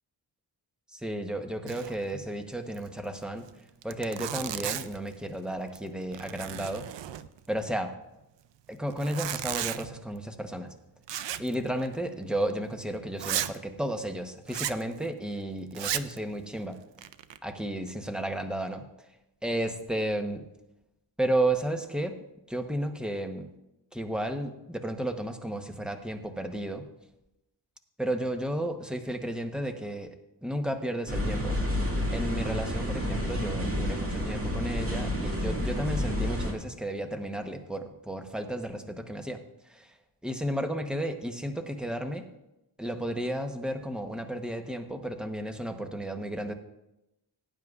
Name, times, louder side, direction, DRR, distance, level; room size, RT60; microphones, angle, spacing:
voice 1, 0.9-3.5 3.8-6.9 7.5-7.9 8.7-10.7 11.4-16.8 17.4-18.9 19.4-20.5 21.2-22.2 22.5-23.5 23.9-26.9 28.0-31.6 32.1-39.9 40.2-42.3 42.8-46.5, right 1 dB, ahead, 5 dB, 0.9 m, -33 dB
Zipper (clothing), 1.7-2.1 2.3-2.4 2.7-2.9 3.5-3.6 3.8-5.1 5.6-5.9 6.1-7.5 8.9-9.9 11.1-11.6 11.8-12.0 12.5-12.6 13.2-13.6 14.5-14.8 15.7-16.2 16.8-17.4, right 11 dB, 85° right, 0.6 m, -34 dB
sound 1, 31.1-36.5, equal, 30° right, 2.1 m, -30 dB
17.5 x 9.3 x 2.4 m, 0.92 s
wide cardioid pair, 115°, 42 cm